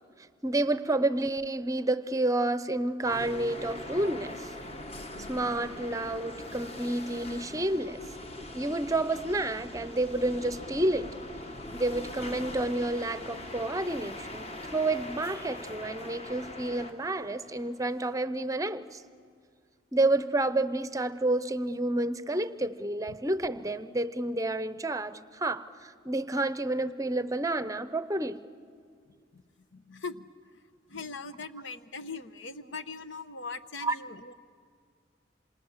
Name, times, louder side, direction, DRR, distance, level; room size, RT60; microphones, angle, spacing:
voice 1, 0.4-4.5 5.3-8.0 8.5-11.1 11.7-19.0 19.9-28.4 33.8-34.0, right 2 dB, 20° right, 13 dB, 0.7 m, -30 dB
sound 1, 3.0-18.1, left 1 dB, 35° left, 1.4 m, -42 dB
voice 2, 29.7-30.3 30.9-34.3, left 4 dB, 80° left, 11 dB, 1.0 m, -41 dB
27.5 x 26.0 x 7.3 m, 2.1 s
head